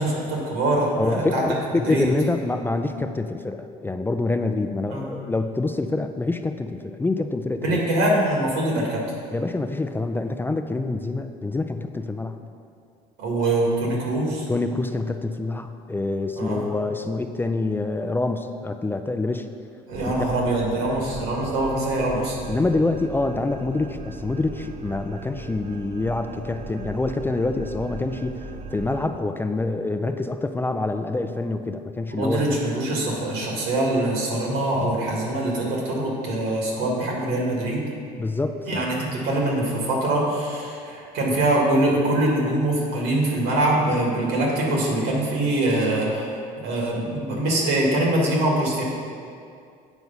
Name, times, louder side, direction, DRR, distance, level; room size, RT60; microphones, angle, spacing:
voice 1, 0.0-1.5 1.9-2.1 4.9-5.1 7.6-9.0 13.2-14.5 16.4-16.7 19.9-22.4 32.1-37.9 38.7-48.8, right 1 dB, 90° right, -2 dB, 2.0 m, -23 dB
voice 2, 1.0-7.8 9.3-12.4 14.5-19.5 20.1-20.2 22.1-28.4 28.7-32.5 38.2-38.8, left 2 dB, 10° left, 7 dB, 0.3 m, -26 dB
sound 1, 19.9-29.1, right 3 dB, 40° right, 0.7 m, -38 dB
8.1 x 4.6 x 5.6 m, 2.4 s
supercardioid pair, 95°, 17 cm